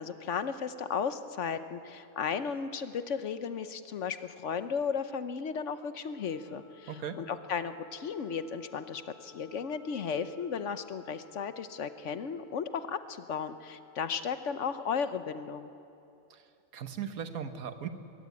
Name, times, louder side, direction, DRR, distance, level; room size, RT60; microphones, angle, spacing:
voice 1, 0.0-15.7, left 6 dB, 60° left, 11 dB, 1.1 m, -35 dB
Wind instrument woodwind instrument, 6.0-15.2, left 3 dB, 80° left, 2.6 m, -59 dB
voice 2, 6.9-7.2 16.3-16.4 16.7-17.9, right 8 dB, 85° right, 9 dB, 1.6 m, -38 dB
21.5 x 16.0 x 9.5 m, 2.8 s
omnidirectional pair, 1.5 m